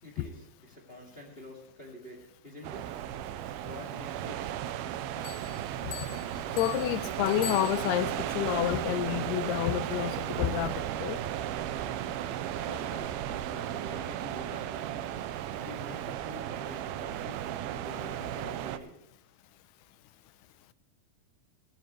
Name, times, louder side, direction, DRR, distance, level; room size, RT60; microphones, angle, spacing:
voice 1, 0.0-3.0 3.6-4.6 11.2-11.4 12.5-15.1 15.6-17.4 17.7-19.0, left 1 dB, 20° left, 1.6 m, -47 dB
sound 1, 2.6-18.8, right 11 dB, 80° right, 2.5 m, -35 dB
sound 2, 5.2-8.3, left 11 dB, 70° left, 2.0 m, -44 dB
voice 2, 6.6-11.2, left 13 dB, 90° left, 2.7 m, -29 dB
18.5 x 15.0 x 3.2 m
omnidirectional pair, 4.5 m